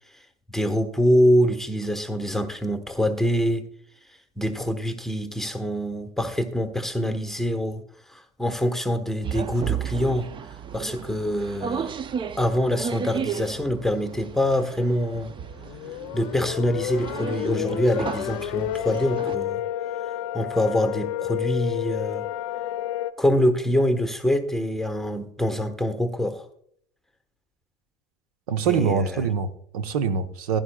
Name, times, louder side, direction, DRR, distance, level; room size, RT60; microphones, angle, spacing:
voice 1, 0.5-3.6 4.4-7.8 8.1-10.3 10.7-11.9 12.4-15.3 16.1-19.6 20.3-22.2 23.2-26.5 28.7-29.3, equal, ahead, 8 dB, 1.2 m, -25 dB
sound 1, 9.2-19.4, right 7 dB, 25° right, 0.6 m, -34 dB
sound 2, 15.4-23.1, left 13 dB, 55° left, 0.7 m, -30 dB
voice 2, 28.5-30.6, right 6 dB, 65° right, 10 dB, 1.1 m, -24 dB
15.5 x 11.5 x 2.3 m, 0.64 s
figure-of-eight pair, 75°, 20 cm